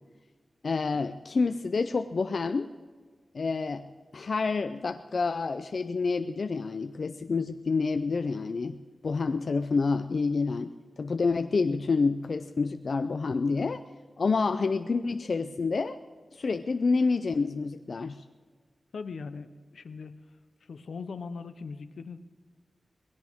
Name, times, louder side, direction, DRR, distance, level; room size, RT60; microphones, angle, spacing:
voice 1, 0.6-2.7 3.3-3.9 4.1-8.8 9.0-13.8 14.2-16.0 16.3-18.2, left 4 dB, 55° left, 8 dB, 0.5 m, -28 dB
voice 2, 18.9-20.2 20.7-22.2, left 4 dB, 80° left, 12 dB, 0.8 m, -40 dB
20.5 x 17.0 x 3.6 m, 1.5 s
wide cardioid pair, 115°, 0 cm